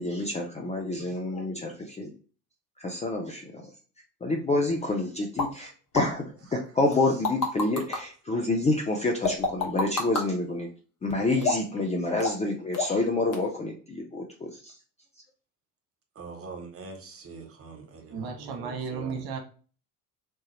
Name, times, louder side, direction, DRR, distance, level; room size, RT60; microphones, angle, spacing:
voice 1, 0.0-2.1 2.8-3.6 4.2-6.3 6.5-10.7 11.0-14.7, left 2 dB, 15° left, 1 dB, 0.5 m, -28 dB
sound 1, 5.4-5.5 5.9-6.1 6.9-8.0 9.2-10.3 11.4-11.8 12.2-12.5 12.7-13.0 13.3-13.4, left 3 dB, 40° left, 1.1 m, -27 dB
voice 2, 16.1-19.2, right 4 dB, 30° right, 3 dB, 1.1 m, -43 dB
voice 3, 18.1-19.4, right 5 dB, 50° right, 3 dB, 0.9 m, -34 dB
3.2 x 2.8 x 3.0 m, 0.38 s
figure-of-eight pair, 60°, 48 cm